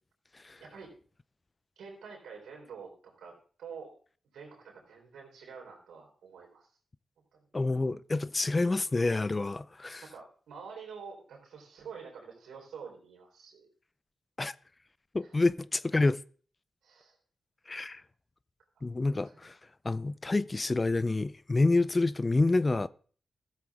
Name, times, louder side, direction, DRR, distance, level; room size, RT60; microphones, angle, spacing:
voice 1, 0.6-0.9 1.8-3.9 4.3-6.7 7.3-7.5 10.0-13.7 15.2-15.4 16.8-17.2 18.8-18.9 19.2-19.4, right 6 dB, 85° right, 3.7 m, -47 dB
voice 2, 7.5-10.0 14.4-14.5 15.1-16.2 17.7-18.0 18.8-19.6 19.8-22.9, left 2 dB, 35° left, 0.5 m, -28 dB
14.0 x 7.6 x 3.6 m
supercardioid pair, 45°, 0 cm